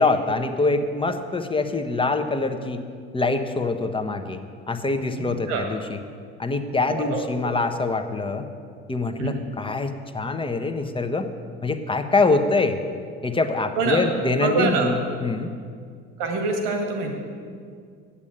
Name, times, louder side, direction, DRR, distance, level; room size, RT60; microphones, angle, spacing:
voice 1, 0.0-2.8 3.1-4.4 4.7-5.8 6.4-8.5 8.9-11.3 11.6-12.8 13.2-14.9 15.2-15.5, left 3 dB, 15° left, 7 dB, 1.1 m, -24 dB
voice 2, 5.2-5.7 6.9-7.2 9.2-9.4 13.8-14.0 14.4-14.9 16.2-17.1, right 3 dB, 70° right, 3 dB, 2.0 m, -25 dB
8.5 x 8.3 x 8.9 m, 2.1 s
hypercardioid pair, 65°, 31 cm